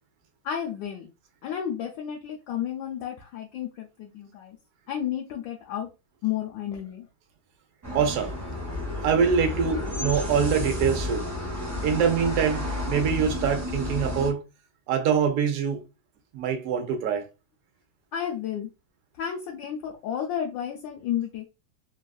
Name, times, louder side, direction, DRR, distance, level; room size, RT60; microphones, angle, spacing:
voice 1, 0.4-1.1 1.4-4.6 4.9-5.9 6.2-7.1 18.1-18.7 19.2-21.4, left 9 dB, 75° left, 1.2 m, -32 dB
sound 1, 7.8-14.3, left 2 dB, 25° right, 0.5 m, -31 dB
voice 2, 7.9-8.4 9.0-11.2 11.8-14.4 14.9-15.8 16.3-17.2, right 7 dB, 70° right, 0.8 m, -24 dB
3.4 x 2.4 x 2.2 m
omnidirectional pair, 2.2 m